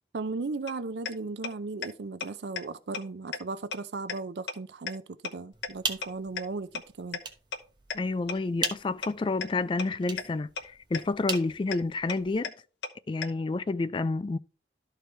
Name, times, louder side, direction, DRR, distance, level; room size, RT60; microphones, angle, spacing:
voice 1, 0.1-7.2, right 3 dB, 80° right, 0.5 m, -36 dB
sound 1, 0.7-0.8 1.1-1.2 1.4-1.5 1.8-1.9 2.2-2.3 2.6-2.7 2.9-3.0 3.3-3.4 3.7-3.8 4.1-4.2 4.5-4.6 4.9-5.0 5.2-5.3 5.6-5.7 6.0-6.1 6.4-6.5 6.7-6.8 7.1-7.2 7.5-7.6 7.9-8.0 8.3-8.4 8.6-8.7 9.0-9.1 9.4-9.5 9.8-9.9 10.2-10.3 10.6-10.7 10.9-11.0 11.3-11.4 11.7-11.8 12.1-12.2 12.4-12.5 12.8-12.9 13.2-13.3, left 5 dB, 85° left, 1.0 m, -32 dB
sound 2, 5.5-12.3, right 5 dB, 25° right, 1.0 m, -40 dB
voice 2, 7.9-12.5 13.1-14.4, left 3 dB, 30° left, 0.3 m, -29 dB
12.5 x 4.6 x 3.3 m
head